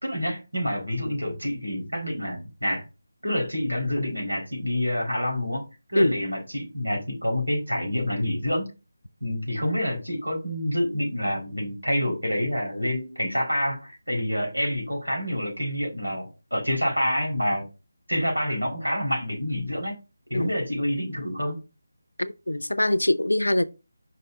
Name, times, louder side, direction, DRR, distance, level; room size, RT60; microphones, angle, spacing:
voice 1, 0.0-2.8 3.2-5.6 5.9-8.7 9.2-17.7 18.1-20.0 20.3-21.6, equal, 80° right, 4.5 m, -27 dB
voice 2, 22.2-23.6, left 1 dB, 75° left, 0.6 m, -23 dB
5.6 x 5.6 x 3.8 m
figure-of-eight pair, 155°, 0 cm